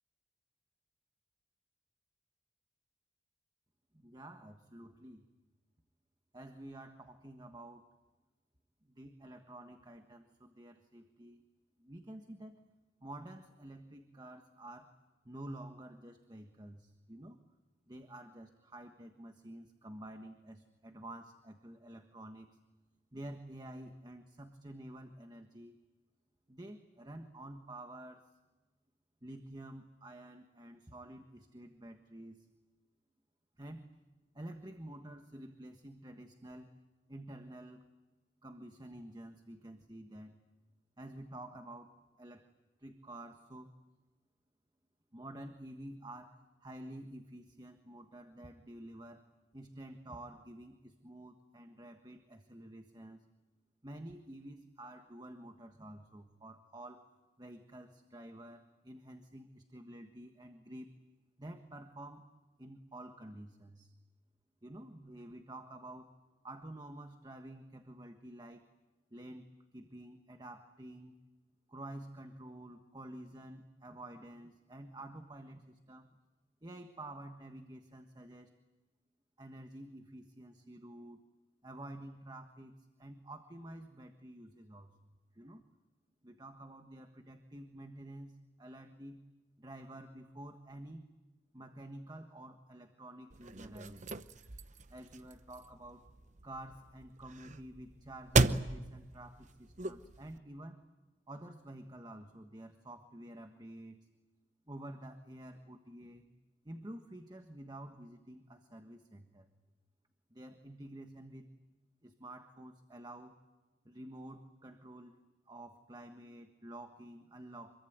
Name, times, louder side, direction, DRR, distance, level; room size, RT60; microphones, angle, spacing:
voice 1, 3.9-5.3 6.3-7.9 8.8-11.4 11.8-12.6 13.0-14.9 15.2-17.4 17.9-22.5 23.1-25.7 26.5-28.3 29.2-32.5 33.6-33.9 34.3-36.7 37.1-37.8 38.4-40.3 41.0-42.5 42.8-43.7 45.1-49.2 49.5-53.2 53.8-57.1 57.4-60.9 61.4-62.3 62.6-63.9 64.6-66.1 66.4-68.6 69.1-69.5 69.7-71.1 71.7-76.1 76.6-78.5 79.4-81.2 81.6-82.7 83.0-84.9 85.3-85.6 86.2-89.2 89.6-91.1 91.5-94.1 94.9-96.0 96.4-100.8 101.3-104.0 104.7-106.3 106.6-109.5 110.3-111.5 112.0-113.4 113.8-115.2 115.4-117.7, right 1 dB, 25° right, 6 dB, 1.4 m, -50 dB
sound 1, 93.3-100.4, right 3 dB, 45° right, 0.9 m, -36 dB
26.0 x 23.0 x 9.3 m, 1.2 s
head